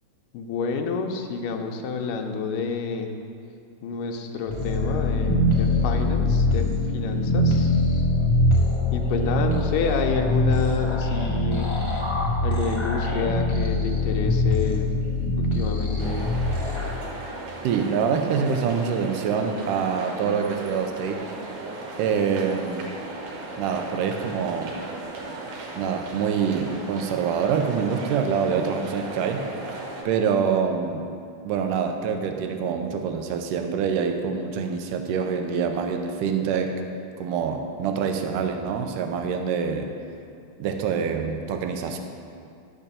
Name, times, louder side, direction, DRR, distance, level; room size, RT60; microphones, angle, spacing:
voice 1, 0.3-3.1 3.8-6.6 6.9-7.8 8.9-11.7 12.4-14.9 15.4-16.4, left 5 dB, 90° left, 3 dB, 2.4 m, -29 dB
sound 1, 4.5-17.0, left 2 dB, 35° left, 0.4 m, -23 dB
sound 2, 16.0-30.0, right 2 dB, 70° right, 2.7 m, -37 dB
voice 2, 17.6-21.2 22.0-22.9 23.6-24.7 25.8-29.5 30.1-31.1 31.5-36.8 37.2-39.9 40.6-42.0, right 6 dB, 85° right, 5 dB, 2.3 m, -25 dB
11.5 x 6.0 x 6.8 m, 2.5 s
omnidirectional pair, 3.7 m